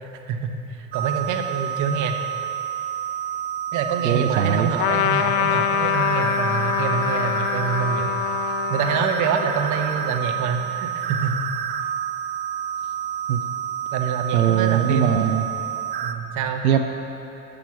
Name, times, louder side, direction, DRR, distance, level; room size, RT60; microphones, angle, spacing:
voice 1, 0.0-2.2 3.7-8.1 8.7-11.4 13.9-15.1 16.0-16.7, right 6 dB, 45° right, 5 dB, 1.0 m, -26 dB
sound 1, 0.9-16.1, right 9 dB, 25° right, 0.3 m, -29 dB
voice 2, 4.0-4.7 13.3-13.4 14.3-15.5 16.6-16.8, right 9 dB, 90° right, 5 dB, 0.6 m, -20 dB
Trumpet, 4.8-10.7, left 12 dB, 55° left, 0.5 m, -25 dB
8.7 x 6.0 x 6.2 m, 3.0 s
hypercardioid pair, 80°, 42 cm